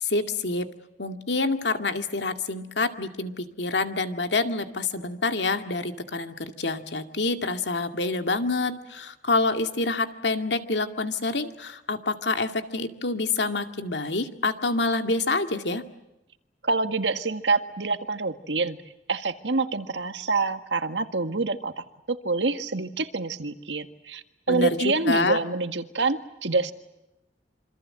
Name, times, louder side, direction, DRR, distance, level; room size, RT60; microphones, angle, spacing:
voice 1, 0.0-0.7 1.0-15.8 24.5-25.4, left 3 dB, 75° left, 7 dB, 2.2 m, -27 dB
voice 2, 16.6-18.8 19.1-26.7, right 3 dB, 85° right, 8 dB, 1.8 m, -26 dB
27.0 x 26.0 x 7.7 m, 0.92 s
head